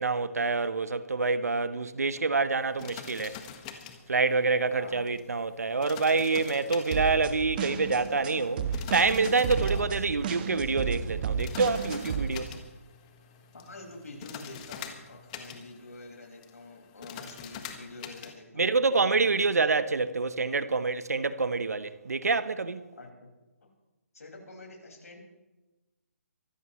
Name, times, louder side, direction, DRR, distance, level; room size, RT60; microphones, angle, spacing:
voice 1, 0.0-3.4 4.1-8.7 8.9-12.5 18.6-22.8, right 4 dB, 85° right, 1.0 m, -27 dB
sound 1, 2.6-18.3, left 8 dB, 30° left, 1.5 m, -46 dB
voice 2, 4.7-5.1 9.7-9.8 13.5-18.7 23.0-23.3 24.1-25.2, left 2 dB, 80° left, 5.6 m, -46 dB
sound 2, 6.9-12.3, right 7 dB, 35° right, 1.4 m, -33 dB
24.0 x 14.0 x 3.2 m
hypercardioid pair, 155°, 8 cm